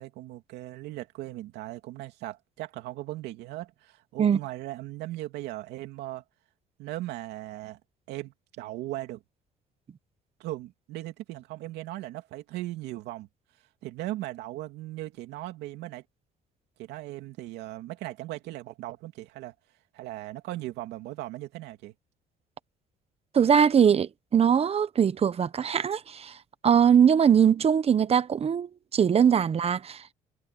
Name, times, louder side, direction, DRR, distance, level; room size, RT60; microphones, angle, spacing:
voice 1, 0.0-6.2 6.8-7.8 8.1-9.2 10.4-13.3 13.8-16.0 16.8-19.5 19.9-21.9, right 16 dB, 85° right, 2.7 m, -38 dB
voice 2, 23.3-26.4 26.6-30.1, right 8 dB, 35° right, 1.0 m, -22 dB
cardioid pair, 110°, 17 cm